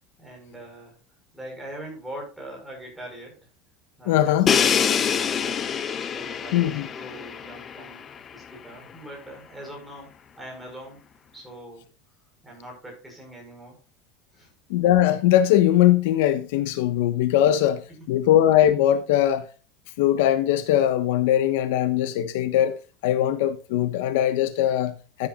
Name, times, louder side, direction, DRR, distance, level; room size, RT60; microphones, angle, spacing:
voice 1, 0.2-1.0 1.3-3.4 4.0-5.7 6.0-11.0 11.3-11.8 12.4-13.8 14.3-14.5 18.0-18.1, right 1 dB, 5° right, 5.3 m, -42 dB
voice 2, 4.1-4.5 6.5-6.9 14.7-19.5 20.0-22.7 23.0-25.3, left 12 dB, 80° left, 1.2 m, -21 dB
Crash cymbal, 4.5-8.3, left 7 dB, 20° left, 0.8 m, -25 dB
14.5 x 9.0 x 2.4 m
cardioid pair, 175°, 0 cm